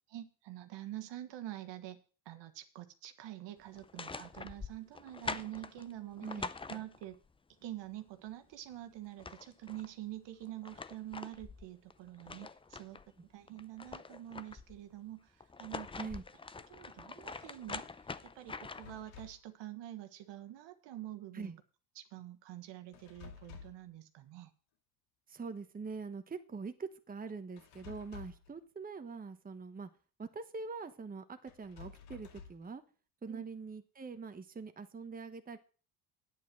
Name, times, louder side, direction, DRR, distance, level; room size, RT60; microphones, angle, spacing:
voice 1, 0.1-2.0 2.2-7.2 7.6-13.0 13.3-15.9 16.7-17.9 18.2-21.6 21.9-24.5 33.3-33.4, right 14 dB, 65° right, 8 dB, 1.5 m, -46 dB
sound 1, 3.7-7.3 8.7-8.8 9.0-9.9 10.4-13.1 13.5-14.8 15.4-19.0, left 4 dB, 10° left, 0.5 m, -45 dB
sound 2, 18.7-19.5 22.9-23.9 27.6-28.5 31.5-32.7, left 6 dB, 75° left, 2.4 m, -52 dB
voice 2, 25.3-29.9 30.2-32.8 33.2-35.6, right 4 dB, 20° right, 8 dB, 1.1 m, -43 dB
9.4 x 8.3 x 6.1 m, 0.38 s
supercardioid pair, 90°, 47 cm